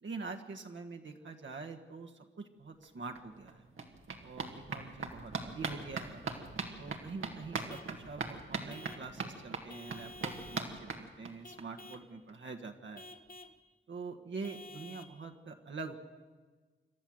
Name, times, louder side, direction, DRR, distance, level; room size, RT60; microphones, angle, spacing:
voice 1, 0.0-3.7 4.2-6.3 6.8-13.0 13.9-16.0, right 4 dB, 65° right, 3 dB, 1.6 m, -45 dB
sound 1, 2.8-2.9 3.1-11.6 11.9-12.0 12.3-12.4 12.6-12.7, right 4 dB, 85° right, 2.0 m, -41 dB
Vehicle horn car horn honking / Truck, 7.7-8.0 8.7-9.1 9.7-10.7 11.4-12.1 13.0-13.6 14.4-15.2, left 2 dB, 45° left, 1.3 m, -51 dB
28.0 x 12.0 x 7.8 m, 1.4 s
cardioid pair, 50°, 20 cm